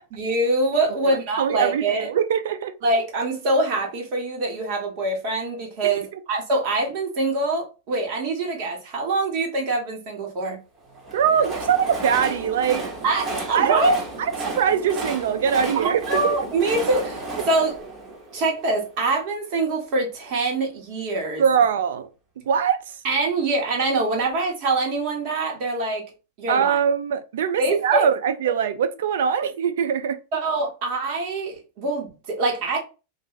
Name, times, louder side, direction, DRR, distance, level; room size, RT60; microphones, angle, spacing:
voice 1, 0.1-2.1 2.8-10.6 13.0-14.0 15.7-17.7 18.3-21.4 23.0-26.0 26.4-26.8 27.6-28.1 30.3-32.8, right 2 dB, 50° right, 1.3 m, -24 dB
voice 2, 1.1-2.7 5.8-5.9 11.1-12.9 13.5-13.9 14.2-14.3 14.6-16.4 21.4-22.1 22.5-22.9 26.5-30.2, right 7 dB, 80° right, 0.5 m, -22 dB
Train, 10.9-19.0, right 2 dB, 20° right, 0.9 m, -33 dB
2.5 x 2.1 x 3.9 m
supercardioid pair, 140°, 0 cm